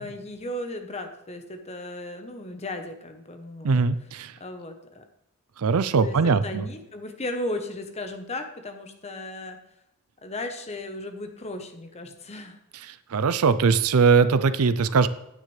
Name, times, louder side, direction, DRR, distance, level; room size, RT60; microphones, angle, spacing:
voice 1, 0.0-3.9 4.4-5.0 6.0-9.6 10.2-12.6, left 1 dB, 30° left, 6 dB, 1.0 m, -35 dB
voice 2, 3.6-4.3 5.6-6.7 13.1-15.1, right 5 dB, 70° right, 14 dB, 0.5 m, -21 dB
9.6 x 9.0 x 3.3 m, 0.84 s
head